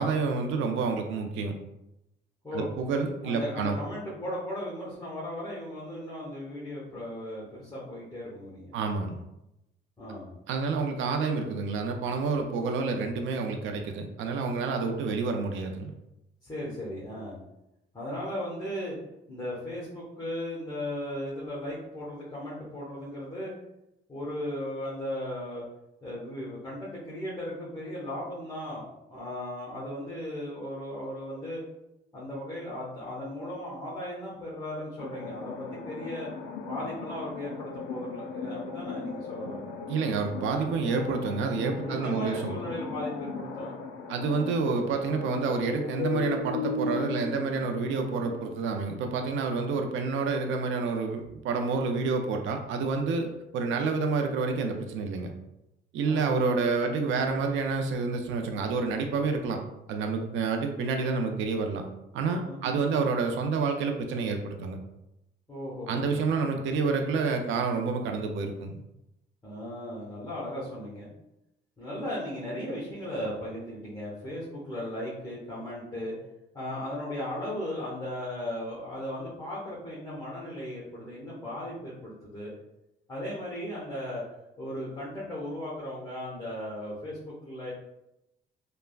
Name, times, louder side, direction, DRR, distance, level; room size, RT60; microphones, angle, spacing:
voice 1, 0.0-1.6 2.5-3.8 8.7-9.2 10.5-15.9 39.9-42.6 44.1-55.3 55.9-59.6 59.9-61.9 62.1-64.8 65.9-68.8, right 4 dB, 75° right, 4 dB, 0.4 m, -28 dB
voice 2, 3.2-8.7 10.0-10.3 16.4-17.4 17.9-19.0 19.3-23.5 24.1-25.6 26.0-28.9 29.1-31.6 32.1-36.3 36.7-39.7 41.8-43.7 56.0-56.4 62.4-62.8 65.5-66.2 66.5-66.6 69.4-71.1 71.8-76.1 76.5-82.5 83.1-84.2 84.6-87.7, left 1 dB, 15° left, -7 dB, 0.9 m, -36 dB
sound 1, 35.0-48.5, left 4 dB, 85° left, 0.4 m, -37 dB
3.3 x 2.1 x 2.3 m, 0.88 s
cardioid pair, 90°, 20 cm